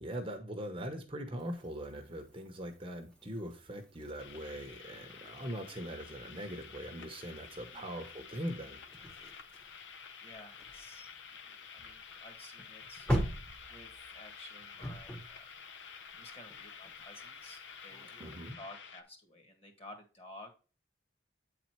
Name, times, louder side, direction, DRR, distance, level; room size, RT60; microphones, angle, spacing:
voice 1, 0.0-8.8 18.2-18.6, equal, 25° right, 5 dB, 0.9 m, -41 dB
sound 1, 1.4-18.5, equal, 5° left, 1.0 m, -44 dB
sound 2, 4.2-19.0, left 6 dB, 70° left, 0.6 m, -50 dB
voice 2, 10.2-11.1 11.4-13.1 13.7-15.5 16.2-20.5, left 1 dB, 30° left, 3 dB, 1.7 m, -53 dB
8.4 x 4.2 x 4.5 m, 0.34 s
head